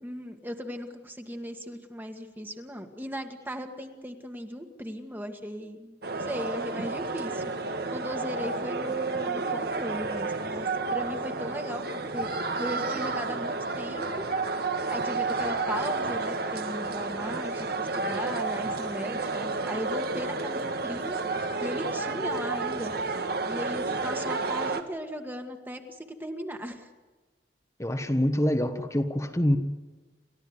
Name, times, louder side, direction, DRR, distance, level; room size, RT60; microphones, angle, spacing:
voice 1, 0.0-14.3 14.9-21.2 21.6-23.2 23.5-26.9, equal, 10° right, 4 dB, 1.8 m, -37 dB
sound 1, 6.0-24.8, right 3 dB, 60° right, 1.6 m, -31 dB
voice 2, 27.8-29.6, left 1 dB, 15° left, 7 dB, 1.2 m, -25 dB
29.5 x 14.0 x 9.7 m, 1.3 s
head